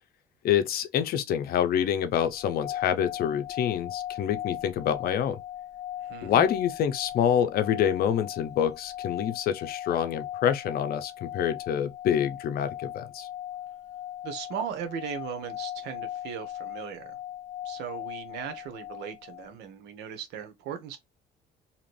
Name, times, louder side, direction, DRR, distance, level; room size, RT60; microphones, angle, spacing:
voice 1, 0.4-5.4 6.2-13.3, left 9 dB, 65° left, 0.6 m, -26 dB
sound 1, 2.3-19.5, left 12 dB, 45° left, 1.0 m, -39 dB
voice 2, 6.0-6.5 14.2-17.2 17.6-21.0, right 8 dB, 85° right, 0.8 m, -38 dB
2.8 x 2.5 x 3.1 m
cardioid pair, 110°, 17 cm